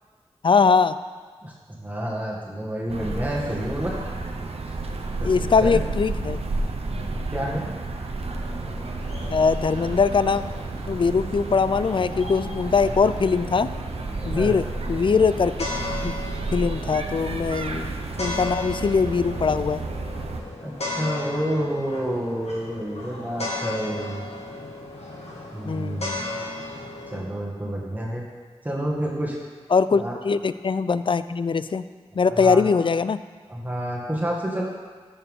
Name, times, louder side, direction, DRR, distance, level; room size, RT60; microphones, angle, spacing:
voice 1, 0.4-0.9 5.2-6.4 9.3-10.4 10.9-13.7 14.2-15.5 16.0-16.1 16.5-19.8 25.6-26.1 29.7-31.8 32.1-33.2, left 5 dB, 55° left, 14 dB, 0.4 m, -21 dB
voice 2, 1.4-3.9 4.7-4.8 5.2-5.8 7.3-7.6 14.2-14.6 20.6-24.2 25.5-26.2 27.1-28.2 28.6-29.4 29.9-30.1 32.4-32.7 33.5-34.6, equal, 15° right, -4 dB, 1.8 m, -29 dB
sound 1, 2.9-20.4, right 2 dB, 75° right, 0.9 m, -31 dB
sound 2, 8.2-27.2, left 2 dB, 80° left, 1.8 m, -36 dB
14.0 x 7.1 x 3.7 m, 1.5 s
wide cardioid pair, 55°, 11 cm